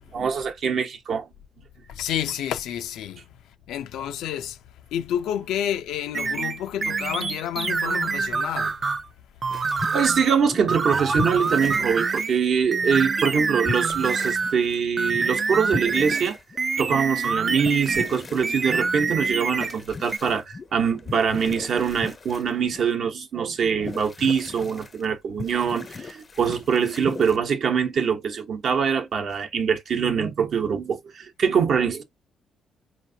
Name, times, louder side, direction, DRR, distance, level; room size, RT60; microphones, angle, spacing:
voice 1, 0.1-1.3 9.9-16.4 16.8-32.0, right 6 dB, 60° right, 0.9 m, -24 dB
voice 2, 1.9-4.6 4.9-8.8, left 10 dB, 85° left, 0.5 m, -30 dB
sound 1, 6.1-9.0 9.4-10.3 10.7-12.3 12.7-14.6 15.0-18.1 18.4-19.8 20.1-20.2, right 4 dB, 35° right, 0.4 m, -26 dB
sound 2, 9.5-10.9 11.2-13.2 13.6-23.0 23.6-25.1 25.4-27.4, left 4 dB, 35° left, 0.5 m, -38 dB
4.2 x 3.0 x 2.7 m
cardioid pair, 90°, 0 cm